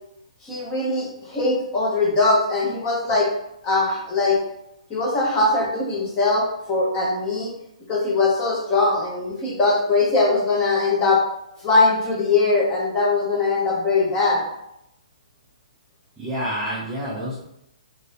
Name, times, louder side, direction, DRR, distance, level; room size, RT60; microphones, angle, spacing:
voice 1, 0.4-3.3 3.6-4.4 4.9-7.5 7.9-11.2 11.6-14.4, left 3 dB, 15° left, -4 dB, 0.7 m, -21 dB
voice 2, 16.2-17.4, equal, 5° right, -10 dB, 0.4 m, -28 dB
2.6 x 2.6 x 3.2 m, 0.80 s
hypercardioid pair, 175°, 4 cm